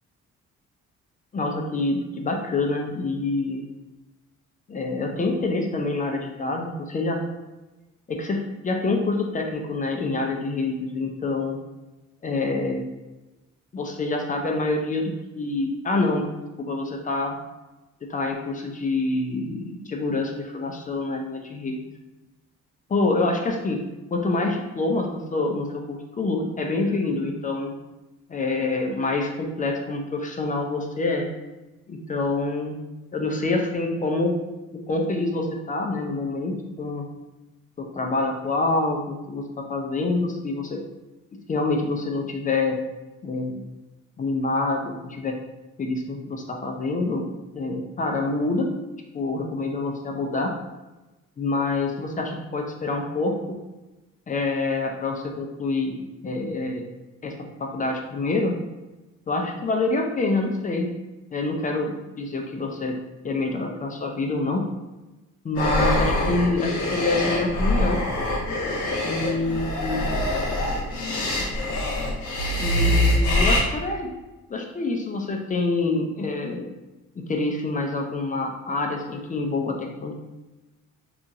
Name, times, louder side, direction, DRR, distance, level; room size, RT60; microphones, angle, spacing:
voice 1, 1.3-3.6 4.7-7.2 8.1-11.6 12.2-12.9 13.7-16.2 16.6-17.4 18.0-21.8 22.9-23.8 24.1-27.7 28.3-31.3 31.9-32.8 33.1-34.3 34.9-37.1 37.8-40.8 41.5-42.8 43.2-43.6 44.2-45.3 45.8-47.2 47.5-48.7 49.1-50.5 51.4-53.6 54.3-55.9 56.2-56.8 57.2-57.3 57.6-58.5 59.3-60.9 61.3-62.9 63.2-64.6 65.4-68.0 69.0-70.1 72.6-74.1 74.5-76.7 77.3-80.1, left 2 dB, 25° left, 2 dB, 0.4 m, -26 dB
sound 1, 65.6-73.6, left 1 dB, 75° left, 0.7 m, -24 dB
2.8 x 2.4 x 2.6 m, 1.1 s
cardioid pair, 90°, 30 cm